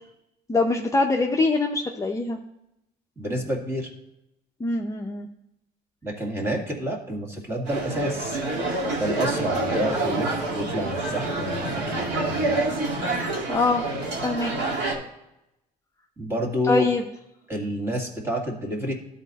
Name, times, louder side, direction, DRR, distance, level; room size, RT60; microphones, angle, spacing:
voice 1, 0.5-2.4 4.6-5.3 13.5-13.8 14.2-14.5 16.6-17.0, left 3 dB, 20° left, 2 dB, 0.6 m, -23 dB
voice 2, 3.2-3.9 6.0-8.4 8.9-12.6 16.2-16.9 17.5-18.9, equal, 15° right, -1 dB, 2.0 m, -29 dB
sound 1, 7.6-14.9, right 2 dB, 85° right, 2.3 m, -27 dB
12.5 x 4.2 x 4.0 m, 0.85 s
cardioid pair, 110°, 17 cm